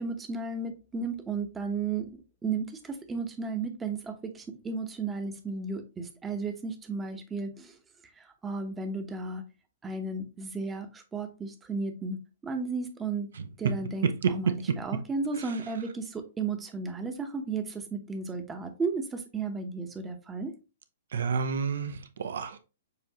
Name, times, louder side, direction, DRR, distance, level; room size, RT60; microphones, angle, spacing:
voice 1, 0.0-2.1 2.4-7.7 8.4-9.4 9.8-12.2 12.4-13.3 13.6-20.5, right 4 dB, 15° right, 0.9 m, -34 dB
voice 2, 21.1-22.6, right 6 dB, 70° right, 0.7 m, -29 dB
6.7 x 2.5 x 2.9 m
hypercardioid pair, 120°, 0 cm